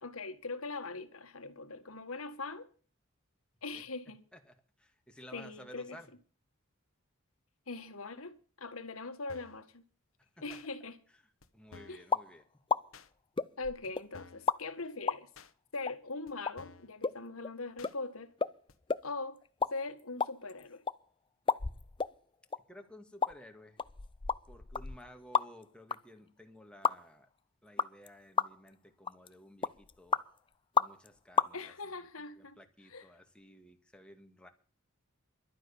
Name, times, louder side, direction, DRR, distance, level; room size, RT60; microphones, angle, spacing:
voice 1, 0.0-2.7 3.6-4.2 5.3-6.0 7.7-9.8 10.4-11.0 11.9-12.0 13.6-15.3 15.7-18.4 19.0-19.4 19.7-20.8 31.5-32.6 32.9-33.1, left 3 dB, 85° left, 1.8 m, -41 dB
voice 2, 4.3-6.1 10.2-10.6 11.1-12.4 22.7-23.8 24.5-27.3 27.6-30.2 30.7-34.5, equal, 5° left, 2.0 m, -55 dB
sound 1, 9.3-9.6 10.5-10.7 11.4-11.5 11.7-12.1 12.9-13.1 13.8-13.9 14.1-14.5 15.4-15.5 16.3-16.4 16.6-16.9 17.8-17.9 18.7-18.8, left 4 dB, 70° left, 1.3 m, -53 dB
sound 2, 12.1-12.3 12.7-12.8 13.4-14.0 14.5-14.6 15.1-15.2 15.8-15.9 16.5-16.6 17.0-17.2 17.4-17.5 17.8-17.9 18.4-18.5 18.9-19.1 19.4-19.7 20.0-20.9 21.5-22.1 22.5-22.6 23.2-23.3 23.8-25.6 25.9-26.0 26.8-27.0 27.8-28.1 28.4-28.7 29.1-29.3 29.6-30.2 30.8-31.1 31.4-31.5, left 5 dB, 25° left, 0.5 m, -31 dB
12.0 x 9.4 x 7.1 m
head